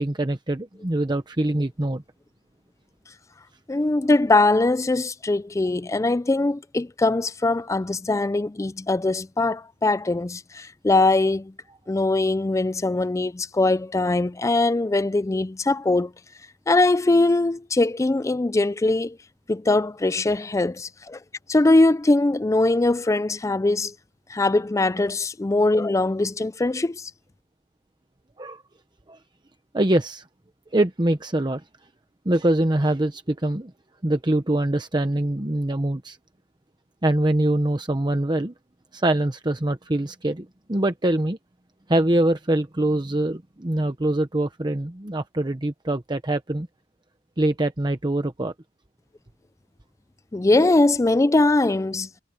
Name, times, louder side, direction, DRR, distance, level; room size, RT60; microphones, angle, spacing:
voice 1, 0.0-2.0 28.4-28.6 29.1-29.2 29.7-30.3 30.7-31.6 32.2-33.7 34.0-36.2 37.0-38.5 38.9-41.4 41.9-46.7 47.4-48.5, right 1 dB, 25° right, 0.9 m, -24 dB
voice 2, 3.7-11.5 11.9-16.1 16.7-19.2 19.5-21.2 21.5-23.9 24.3-27.1 50.3-52.1, left 2 dB, 15° left, 0.4 m, -21 dB
head